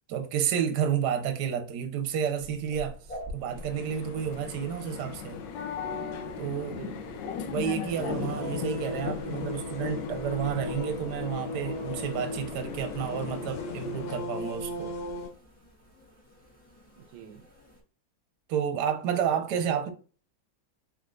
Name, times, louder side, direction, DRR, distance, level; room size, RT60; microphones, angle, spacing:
voice 1, 0.1-3.0 3.3-5.4 6.4-6.8 7.4-14.9 18.5-19.9, right 8 dB, 65° right, 1.3 m, -30 dB
sound 1, 2.1-17.8, equal, 5° left, 1.1 m, -50 dB
sound 2, 3.4-14.3, left 7 dB, 75° left, 1.2 m, -38 dB
voice 2, 6.7-7.4 16.9-17.5 19.2-19.9, right 9 dB, 90° right, 1.4 m, -48 dB
sound 3, 7.9-15.3, left 2 dB, 60° left, 1.8 m, -37 dB
4.3 x 3.6 x 2.5 m
omnidirectional pair, 2.1 m